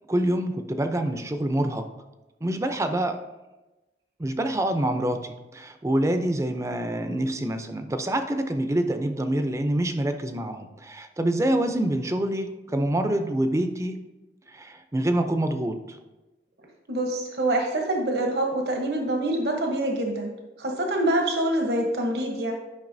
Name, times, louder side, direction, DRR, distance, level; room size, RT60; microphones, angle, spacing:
voice 1, 0.1-1.9 2.4-3.2 4.2-14.0 14.5-16.0, right 1 dB, 15° right, 7 dB, 0.5 m, -26 dB
voice 2, 16.9-20.3 20.6-22.5, right 1 dB, 65° right, 2 dB, 1.0 m, -25 dB
10.5 x 5.4 x 2.7 m, 1.1 s
head